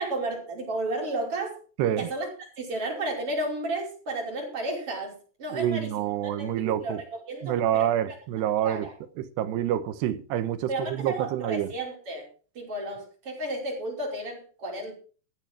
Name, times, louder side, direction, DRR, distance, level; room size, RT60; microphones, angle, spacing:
voice 1, 0.0-1.6 2.0-2.3 2.6-5.9 6.2-8.2 8.6-8.9 10.7-12.3 12.5-15.0, right 2 dB, 35° right, 5.9 m, -33 dB
voice 2, 1.8-2.1 5.5-7.0 7.4-8.9 9.2-11.7, right 11 dB, 85° right, 3.3 m, -27 dB
15.0 x 11.5 x 4.7 m
omnidirectional pair, 4.7 m